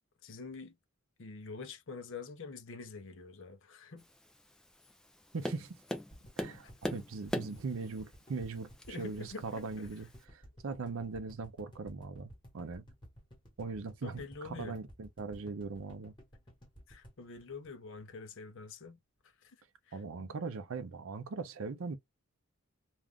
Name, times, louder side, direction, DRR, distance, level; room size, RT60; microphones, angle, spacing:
voice 1, 0.2-0.8 1.2-4.1 8.9-9.9 14.0-14.8 16.9-19.0 19.4-19.6 19.9-20.3, left 4 dB, 55° left, 0.6 m, -46 dB
Tap, 4.0-10.2, left 1 dB, 5° left, 0.3 m, -43 dB
voice 2, 5.3-5.8 6.4-8.7 9.0-12.8 13.6-16.1 19.9-22.0, right 4 dB, 65° right, 0.5 m, -40 dB
sound 1, 6.1-18.3 18.6-18.7 18.9-19.0, equal, 20° left, 1.2 m, -55 dB
2.4 x 2.4 x 3.4 m
head